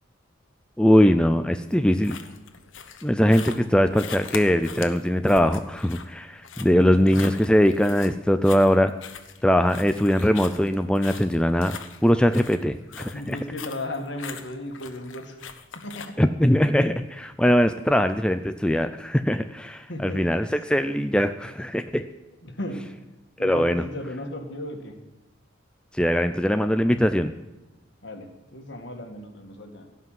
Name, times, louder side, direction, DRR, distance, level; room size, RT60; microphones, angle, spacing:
voice 1, 0.8-2.2 3.0-8.9 9.4-11.7 12.0-13.4 16.2-22.0 23.4-23.8 25.9-27.3, equal, 5° left, 8 dB, 0.4 m, -21 dB
sound 1, 1.7-16.1, left 6 dB, 80° left, 1.2 m, -41 dB
voice 2, 6.7-7.2 13.1-15.4 15.8-16.2 19.9-20.3 22.4-22.8 23.4-24.9 28.0-29.9, left 1 dB, 60° left, 4 dB, 2.1 m, -35 dB
17.0 x 5.9 x 9.3 m, 1.1 s
head